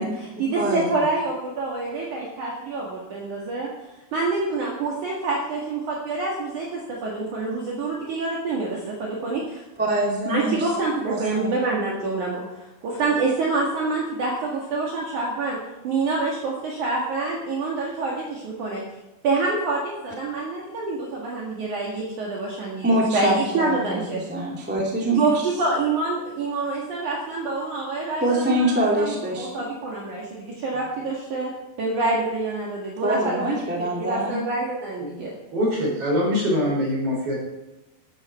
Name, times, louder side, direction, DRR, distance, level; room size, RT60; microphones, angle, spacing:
voice 1, 0.0-3.7 4.1-9.6 10.3-15.6 15.8-18.8 19.2-24.2 25.1-31.5 31.8-35.3, right 3 dB, 55° right, -3 dB, 3.0 m, -27 dB
voice 2, 9.8-10.7 11.1-11.5 22.8-25.3 28.1-29.5 33.0-34.4, right 1 dB, 5° right, -3 dB, 1.4 m, -24 dB
voice 3, 35.5-37.4, equal, 35° right, -2 dB, 5.5 m, -23 dB
13.5 x 11.5 x 4.4 m, 0.97 s
omnidirectional pair, 4.8 m